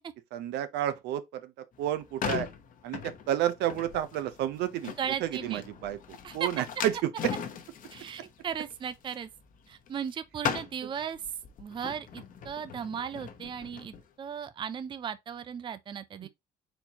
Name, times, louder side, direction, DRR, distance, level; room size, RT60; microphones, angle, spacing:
voice 1, 0.3-2.5 2.8-4.9 5.2-7.3 16.2-16.3, right 12 dB, 80° right, 0.7 m, -31 dB
sound 1, 1.7-10.1 10.4-14.0, left 8 dB, 55° left, 1.0 m, -39 dB
voice 2, 5.0-5.6 6.2-6.5 7.9-9.3 9.7-11.3 11.6-16.3, right 7 dB, 30° right, 0.4 m, -36 dB
4.4 x 4.1 x 2.8 m
cardioid pair, 110°, 17 cm